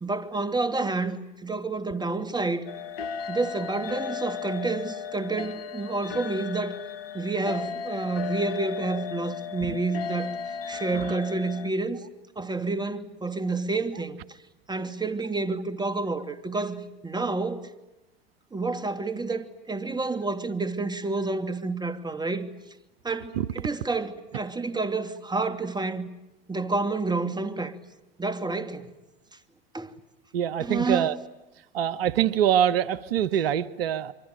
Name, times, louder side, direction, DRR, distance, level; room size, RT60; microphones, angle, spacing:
voice 1, 0.0-2.7 3.3-6.8 7.1-12.0 12.4-14.4 14.7-17.7 18.5-22.5 23.0-26.1 26.5-27.8 28.2-28.9 29.7-29.9 30.6-31.1, right 3 dB, 15° right, 2.6 m, -29 dB
sound 1, 2.7-11.7, left 7 dB, 80° left, 1.1 m, -35 dB
voice 2, 30.3-31.2 31.7-34.1, right 10 dB, 80° right, 1.0 m, -24 dB
27.5 x 24.0 x 9.0 m
hypercardioid pair, 85°, 29 cm